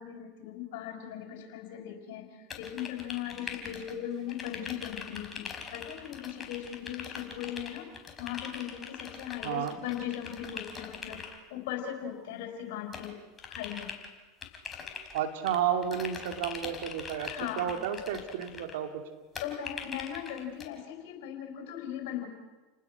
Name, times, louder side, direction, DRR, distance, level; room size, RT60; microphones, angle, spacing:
voice 1, 0.0-7.9 8.2-13.2 13.5-13.9 17.2-17.7 19.4-22.3, left 10 dB, 70° left, 4 dB, 5.3 m, -38 dB
sound 1, 2.5-4.0 4.3-11.4 12.9-14.1 14.4-15.6 15.8-18.7 19.3-20.7, left 6 dB, 25° left, 4.3 m, -42 dB
voice 2, 9.4-9.7 15.1-19.0, right 9 dB, 70° right, 6 dB, 2.7 m, -32 dB
30.0 x 19.5 x 6.1 m, 1.2 s
hypercardioid pair, 95°, 0 cm